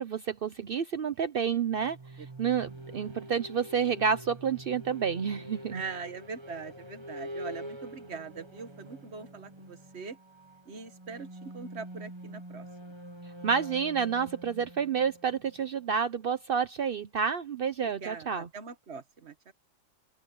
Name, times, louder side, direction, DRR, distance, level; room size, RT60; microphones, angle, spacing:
voice 1, 0.0-2.0 2.4-5.8 13.4-18.5, right 6 dB, 75° right, 0.5 m, -29 dB
sound 1, 1.7-16.3, right 1 dB, 20° right, 1.0 m, -46 dB
voice 2, 2.2-2.6 5.7-10.2 10.6-12.7 17.8-19.5, right 5 dB, 40° right, 1.4 m, -42 dB
open air
omnidirectional pair, 1.9 m